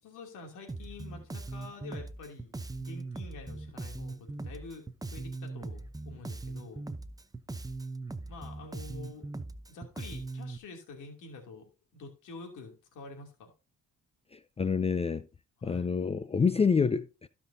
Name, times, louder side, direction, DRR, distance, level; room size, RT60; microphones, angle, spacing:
voice 1, 0.0-4.8 5.1-6.9 8.3-9.3 9.7-13.5 15.6-15.9, left 3 dB, 90° left, 2.8 m, -47 dB
Bass guitar, 0.7-10.6, right 3 dB, 10° right, 0.7 m, -40 dB
voice 2, 14.3-15.3 15.6-17.3, left 5 dB, 20° left, 0.4 m, -27 dB
15.5 x 5.8 x 2.7 m
cardioid pair, 90°, 30 cm